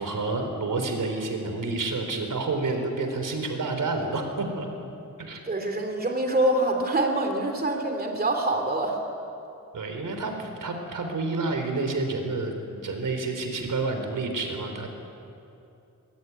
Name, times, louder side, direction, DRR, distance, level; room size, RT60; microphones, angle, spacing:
voice 1, 0.0-4.9 5.2-5.4 9.7-14.9, right 3 dB, 80° right, 5 dB, 4.0 m, -29 dB
voice 2, 5.5-9.0, right 1 dB, 30° right, 4 dB, 2.6 m, -25 dB
25.0 x 21.5 x 9.6 m, 2.7 s
wide cardioid pair, 165°, 32 cm